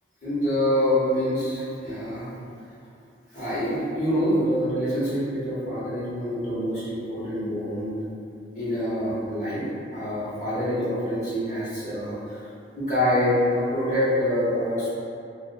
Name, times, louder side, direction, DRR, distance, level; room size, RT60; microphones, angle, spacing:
voice 1, 0.2-2.3 3.3-8.0 8.5-9.6 9.9-12.1 12.8-14.9, equal, 45° left, -12 dB, 1.1 m, -25 dB
2.5 x 2.2 x 2.5 m, 2.5 s
head